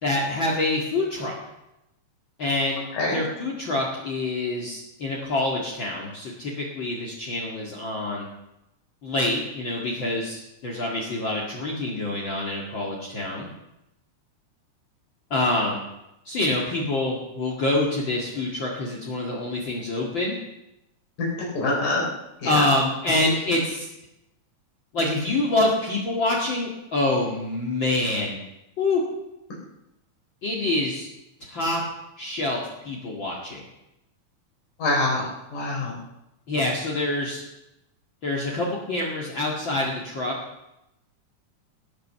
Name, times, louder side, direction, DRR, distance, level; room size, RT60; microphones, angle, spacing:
voice 1, 0.0-1.4 2.4-2.8 3.1-8.3 9.0-13.5 15.3-15.8 16.3-20.3 22.4-23.9 24.9-28.4 28.8-29.0 30.4-31.1 31.5-31.8 32.2-33.6 36.5-37.4 38.2-40.3, left 2 dB, 40° left, -2 dB, 2.5 m, -26 dB
voice 2, 21.6-22.0 22.4-22.5 34.8-35.3 35.5-36.0, left 2 dB, 85° left, -3 dB, 5.4 m, -24 dB
18.0 x 9.3 x 6.8 m, 0.90 s
omnidirectional pair, 3.6 m